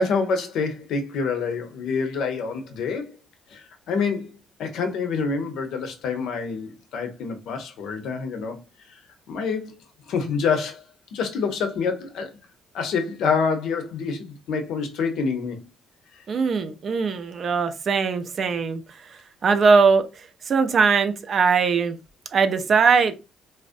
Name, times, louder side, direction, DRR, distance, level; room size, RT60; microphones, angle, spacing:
voice 1, 0.0-3.1 3.5-4.3 4.6-8.6 9.3-9.8 10.1-10.8 11.1-12.3 12.7-15.6, left 5 dB, 75° left, 0.6 m, -26 dB
voice 2, 16.3-18.8 19.4-20.0 20.5-22.0 22.3-23.2, right 5 dB, 50° right, 0.4 m, -20 dB
2.5 x 2.0 x 2.4 m
supercardioid pair, 65°, 0 cm